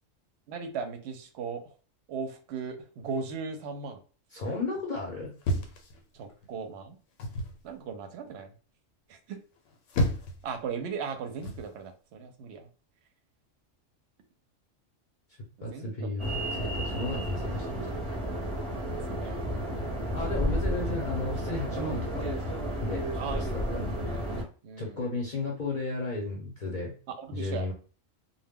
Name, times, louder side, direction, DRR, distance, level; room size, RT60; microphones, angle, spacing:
voice 1, 0.5-1.6 2.1-4.0 6.1-7.0 7.6-8.5 9.1-9.4 10.4-12.7 15.7-16.1 18.9-20.2 23.2-23.5 24.6-25.0 27.1-27.7, right 5 dB, 65° right, 7 dB, 0.8 m, -38 dB
voice 2, 4.3-5.3 15.6-17.9 20.1-22.3 22.8-23.9 24.8-26.9 27.3-27.7, left 2 dB, 50° left, -2 dB, 0.6 m, -34 dB
sound 1, 5.4-6.5 7.2-7.6 9.6-10.5 11.4-11.7, left 1 dB, 80° left, 0.9 m, -31 dB
sound 2, 16.2-24.4, equal, 35° right, 0.6 m, -32 dB
2.1 x 2.1 x 3.4 m, 0.38 s
omnidirectional pair, 1.3 m